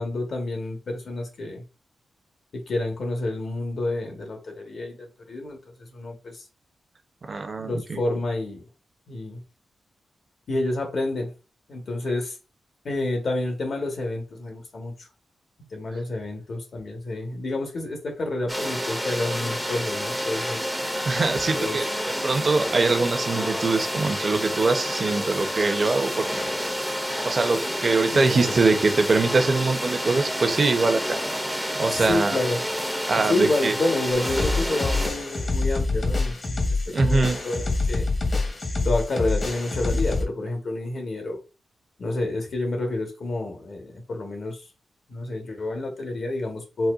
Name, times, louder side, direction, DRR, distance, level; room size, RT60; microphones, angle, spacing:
voice 1, 0.0-1.6 2.5-6.4 7.6-8.7 9.1-9.4 10.5-11.3 11.7-12.4 12.8-15.1 15.7-20.6 21.5-21.8 28.1-28.6 31.9-32.6 33.3-38.1 38.8-41.4 42.0-44.6 45.1-46.9, left 2 dB, 65° left, 1.2 m, -29 dB
voice 2, 7.3-8.0 21.0-21.9 22.2-26.2 27.2-31.0 31.8-32.4 33.1-33.7 36.9-37.4, right 3 dB, 50° right, 0.7 m, -23 dB
sound 1, 18.5-35.1, equal, ahead, 0.6 m, -29 dB
sound 2, 34.1-40.2, left 3 dB, 50° left, 1.1 m, -26 dB
4.1 x 2.2 x 2.4 m
cardioid pair, 65°, 0 cm